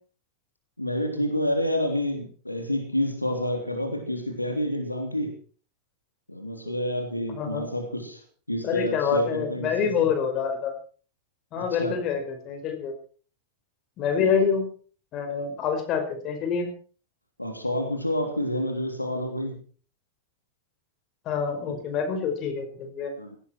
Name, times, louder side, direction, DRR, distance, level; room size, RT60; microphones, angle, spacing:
voice 1, 0.8-5.3 6.3-8.2 8.5-9.9 11.6-11.9 14.1-14.4 17.4-19.6 23.2-23.4, left 1 dB, 85° left, 5 dB, 3.3 m, -29 dB
voice 2, 7.3-7.7 8.6-10.7 11.5-12.9 14.0-14.7 15.1-16.7 21.3-23.1, left 6 dB, 35° left, 5 dB, 5.3 m, -26 dB
18.5 x 16.5 x 4.6 m, 0.41 s
figure-of-eight pair, 90°, 0 cm